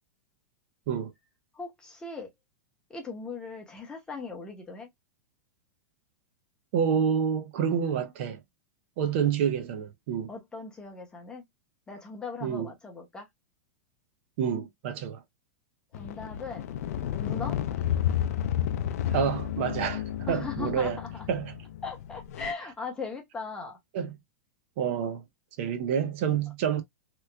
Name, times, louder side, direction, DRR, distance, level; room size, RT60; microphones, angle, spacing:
voice 1, 1.5-2.3 2.9-4.9 10.3-11.4 11.9-13.3 15.9-16.6 17.2-17.6 20.3-21.3 21.8-23.8, left 4 dB, 10° left, 0.8 m, -39 dB
voice 2, 6.7-8.4 9.0-10.3 12.4-12.7 14.4-15.2 19.1-21.0 21.3-21.5 23.9-24.1 24.8-25.2 25.6-26.8, right 8 dB, 45° right, 0.6 m, -28 dB
sound 1, 15.9-22.5, left 10 dB, 65° left, 0.4 m, -31 dB
3.0 x 2.3 x 3.3 m
supercardioid pair, 160°, 9 cm